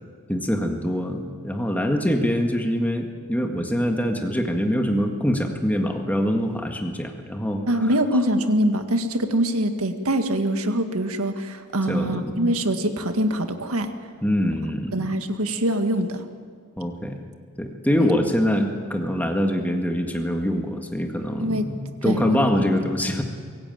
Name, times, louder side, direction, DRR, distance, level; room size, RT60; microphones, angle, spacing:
voice 1, 0.3-7.9 11.9-12.6 14.2-15.1 16.8-17.2 17.6-23.2, equal, 5° left, 3 dB, 1.8 m, -24 dB
voice 2, 7.7-13.9 14.9-16.2 18.0-18.1 21.4-21.7 22.0-22.4, right 1 dB, 70° right, 7 dB, 1.8 m, -24 dB
23.5 x 17.0 x 9.2 m, 2.1 s
head